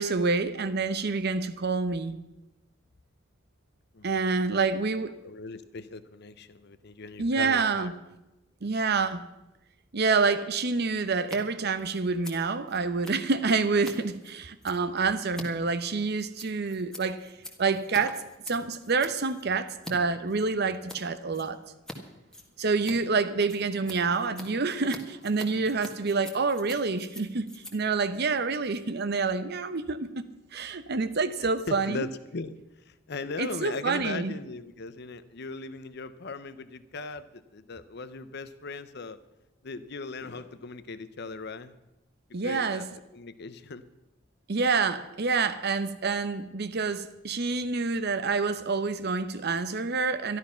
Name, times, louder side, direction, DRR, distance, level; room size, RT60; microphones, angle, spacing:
voice 1, 0.0-2.2 4.0-5.2 7.2-7.9 8.6-9.2 9.9-17.3 17.6-21.6 22.6-27.5 27.7-30.2 30.5-32.0 33.4-34.3 42.3-42.9 44.5-50.4, right 4 dB, 55° right, 0.8 m, -27 dB
voice 2, 5.2-7.9 31.4-39.2 39.6-41.7 42.4-43.8, left 4 dB, 60° left, 0.8 m, -39 dB
Scissors, 11.2-11.4 11.6-19.9 20.3-21.0 21.3-22.0 22.2-29.0, left 1 dB, 5° left, 1.6 m, -46 dB
12.5 x 12.0 x 5.7 m
head